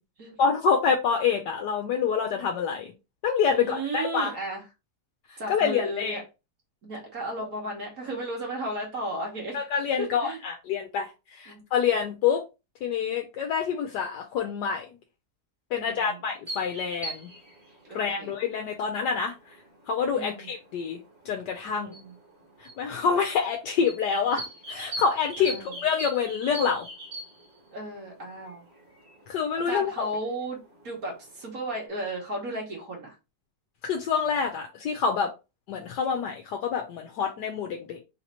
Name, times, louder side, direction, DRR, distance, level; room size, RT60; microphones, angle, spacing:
voice 1, 0.4-2.9 3.2-4.3 5.3-6.2 9.5-12.4 12.8-14.9 15.7-17.3 17.9-19.6 19.9-21.0 21.2-21.9 22.6-26.9 29.3-30.1 33.8-35.3 35.7-38.0, left 6 dB, 80° left, 1.3 m, -27 dB
voice 2, 3.5-4.6 5.4-6.2 6.8-9.6 10.0-10.4 11.5-11.6 15.8-16.3 17.9-18.4 20.1-20.5 21.8-22.1 25.4-25.7 27.7-28.6 29.7-30.6 30.8-33.2, right 1 dB, 55° right, 1.8 m, -34 dB
sound 1, 16.5-31.8, right 1 dB, 35° right, 1.6 m, -43 dB
3.8 x 2.9 x 4.2 m
omnidirectional pair, 1.8 m